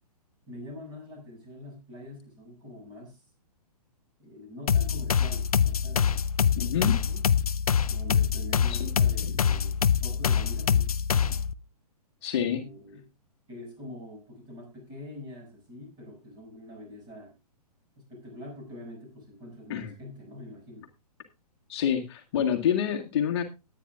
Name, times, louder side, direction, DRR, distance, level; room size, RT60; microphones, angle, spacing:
voice 1, 0.5-3.3 4.2-7.2 7.9-9.7 10.0-11.4 12.5-13.1 13.5-17.3 18.0-20.9, left 1 dB, 20° right, 1 dB, 7.1 m, -45 dB
sound 1, 4.7-11.5, left 7 dB, 65° left, 0.6 m, -25 dB
voice 2, 6.6-6.9 8.7-8.9 12.2-12.7 19.7-19.9 21.7-23.4, left 9 dB, 40° left, 3 dB, 1.8 m, -27 dB
20.0 x 9.4 x 2.4 m, 0.26 s
figure-of-eight pair, 120°, 20 cm